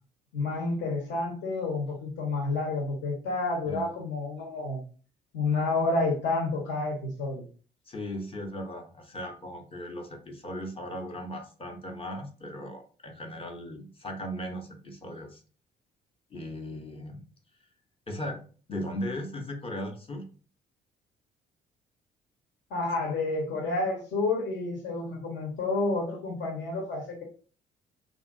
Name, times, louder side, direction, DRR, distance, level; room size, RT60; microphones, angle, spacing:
voice 1, 0.3-4.8 5.3-7.4 22.7-27.2, left 3 dB, 65° left, 0 dB, 1.1 m, -29 dB
voice 2, 7.9-15.4 16.3-17.2 18.1-18.4 18.7-20.3, equal, 30° left, 3 dB, 0.7 m, -37 dB
2.8 x 2.5 x 2.5 m, 0.39 s
hypercardioid pair, 55°, 20 cm